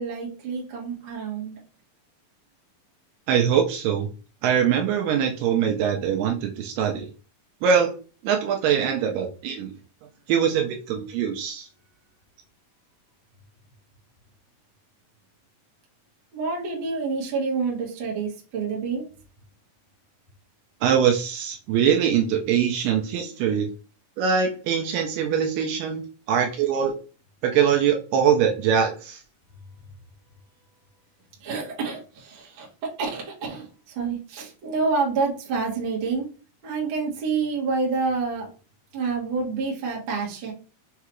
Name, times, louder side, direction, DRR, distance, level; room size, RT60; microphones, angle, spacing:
voice 1, 0.0-1.5 16.3-19.1 31.4-36.3 36.6-38.5 38.9-40.5, right 4 dB, 60° right, -2 dB, 1.3 m, -28 dB
voice 2, 3.3-4.1 4.4-7.1 7.6-7.9 8.2-9.7 10.3-11.7 20.8-23.7 24.2-26.0 26.3-26.9 27.4-29.2, right 8 dB, 80° right, 3 dB, 2.1 m, -22 dB
5.6 x 2.3 x 3.0 m, 0.36 s
omnidirectional pair, 4.1 m